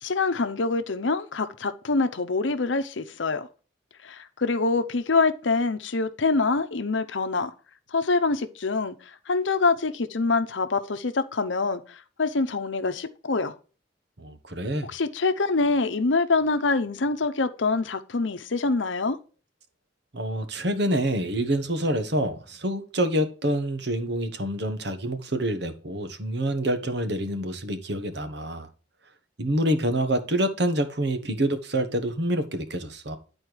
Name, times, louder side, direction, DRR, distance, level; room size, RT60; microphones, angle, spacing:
voice 1, 0.0-3.5 4.0-7.5 7.9-8.9 9.3-13.5 14.9-19.2, left 3 dB, 80° left, 0.8 m, -25 dB
voice 2, 14.2-14.9 20.1-28.7 29.4-33.2, right 1 dB, 65° right, 1.2 m, -27 dB
10.5 x 4.4 x 4.7 m
head